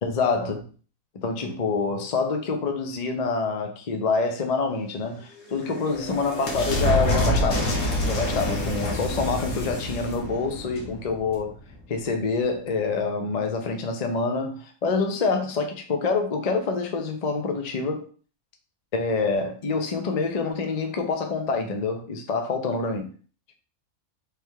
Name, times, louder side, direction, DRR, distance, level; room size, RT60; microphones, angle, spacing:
voice 1, 0.0-0.6 1.1-7.7 8.0-11.5 11.9-18.1 18.9-23.1, left 4 dB, 40° left, 0.6 m, -26 dB
sound 1, 5.3-11.8, left 1 dB, 75° left, 1.6 m, -27 dB
3.4 x 3.3 x 4.6 m
omnidirectional pair, 1.5 m